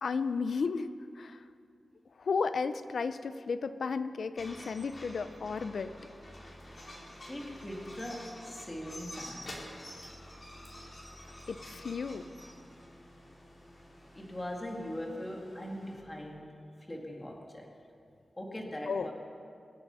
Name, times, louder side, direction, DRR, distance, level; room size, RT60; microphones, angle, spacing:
voice 1, 0.0-1.4 2.2-5.9 11.5-12.3 18.9-19.1, left 5 dB, 70° left, 12 dB, 0.6 m, -33 dB
sound 1, 4.4-16.0, left 1 dB, 35° left, 3.0 m, -49 dB
voice 2, 7.3-9.5 14.1-16.6 16.9-17.7 18.4-19.1, left 1 dB, 20° left, 0 dB, 2.2 m, -40 dB
25.0 x 9.2 x 5.6 m, 2.4 s
wide cardioid pair, 140°, 0 cm